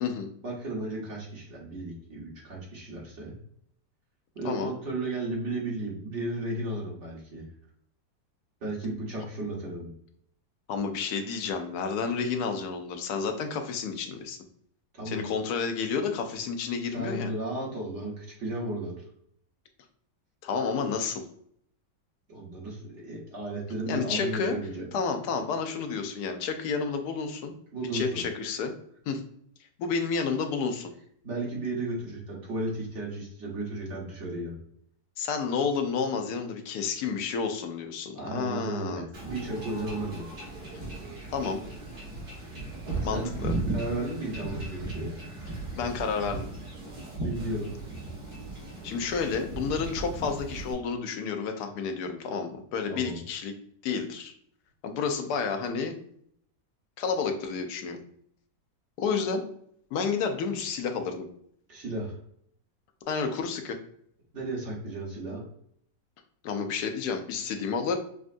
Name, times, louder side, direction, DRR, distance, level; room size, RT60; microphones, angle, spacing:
voice 1, 0.4-3.4 4.3-7.4 8.6-9.9 14.9-15.3 16.9-19.0 22.3-24.9 27.7-28.2 31.2-34.6 38.1-40.2 43.0-43.3 43.7-45.2 47.2-47.7 52.9-53.2 61.7-62.1 64.3-65.4, right 2 dB, 45° right, -3 dB, 1.6 m, -34 dB
voice 2, 10.7-14.4 15.1-17.3 20.4-21.2 23.9-24.6 24.9-27.5 27.9-28.7 29.1-29.2 29.8-30.9 35.2-39.1 41.3-41.6 43.0-43.5 45.8-46.5 48.8-53.5 53.8-54.3 54.8-55.9 57.0-58.0 59.0-59.4 59.9-61.3 63.1-63.8 66.4-68.0, left 5 dB, 70° left, 5 dB, 1.1 m, -30 dB
Wind / Ocean / Boat Water vehicle, 39.1-50.7, right 2 dB, 70° right, 2.2 m, -36 dB
6.3 x 2.4 x 2.5 m, 0.66 s
omnidirectional pair, 1.9 m